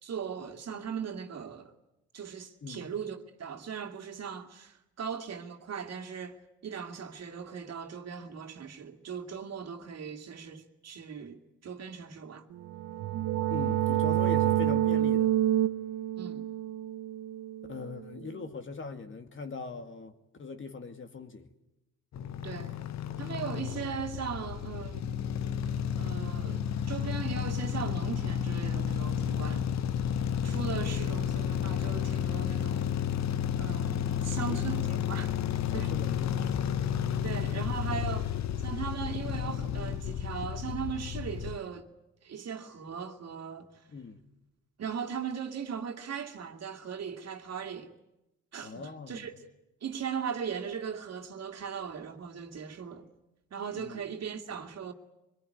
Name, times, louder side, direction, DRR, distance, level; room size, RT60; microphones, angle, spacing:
voice 1, 0.0-1.7 2.1-12.5 16.2-16.5 22.4-22.8 23.2-25.2 26.0-29.7 30.4-33.0 33.6-34.8 35.1-35.4 35.7-35.9 37.2-41.9 42.2-43.8 44.8-47.9 48.5-49.3 49.8-53.1 53.5-54.9, right 7 dB, 55° right, 2.4 m, -38 dB
sound 1, 12.6-18.2, right 12 dB, 75° right, 1.0 m, -28 dB
voice 2, 13.5-15.3 17.7-20.1 20.4-21.5 34.3-35.0 35.5-36.6 43.9-44.2 48.6-49.3 53.7-54.0, left 4 dB, 40° left, 2.2 m, -41 dB
sound 2, 22.1-41.6, left 9 dB, 60° left, 1.0 m, -32 dB
24.5 x 21.5 x 9.5 m
cardioid pair, 90°, 30 cm